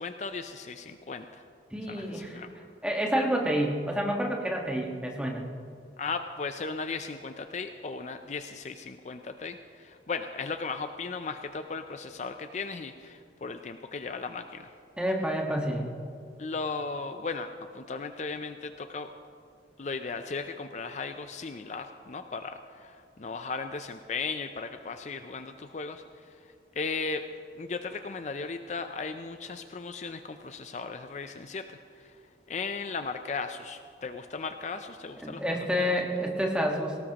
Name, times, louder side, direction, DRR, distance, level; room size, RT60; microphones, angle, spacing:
voice 1, 0.0-1.4 1.9-2.5 6.0-14.7 16.4-19.1 19.8-27.2 27.6-32.2 32.5-36.0, left 4 dB, 40° left, 8 dB, 0.4 m, -36 dB
voice 2, 1.7-2.4 2.8-5.4 15.0-15.9 35.2-37.0, equal, 5° right, 0 dB, 1.4 m, -29 dB
18.5 x 18.0 x 2.9 m, 2.5 s
head